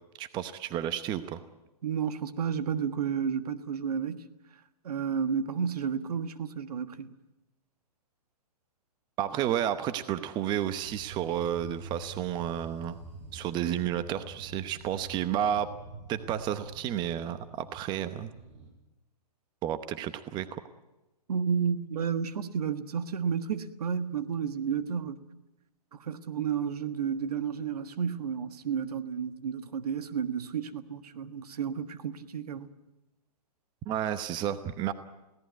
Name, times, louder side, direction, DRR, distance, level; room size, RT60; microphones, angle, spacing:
voice 1, 0.2-1.4 9.2-13.0 13.3-15.7 16.1-18.3 19.6-20.6 33.9-34.9, right 10 dB, 20° right, 0.9 m, -31 dB
voice 2, 1.8-4.2 4.8-7.1 21.3-25.2 25.9-32.7, right 7 dB, 70° right, 1.6 m, -31 dB
sound 1, 10.8-18.7, right 3 dB, 45° right, 5.9 m, -46 dB
22.0 x 17.0 x 9.4 m
hypercardioid pair, 140°, 21 cm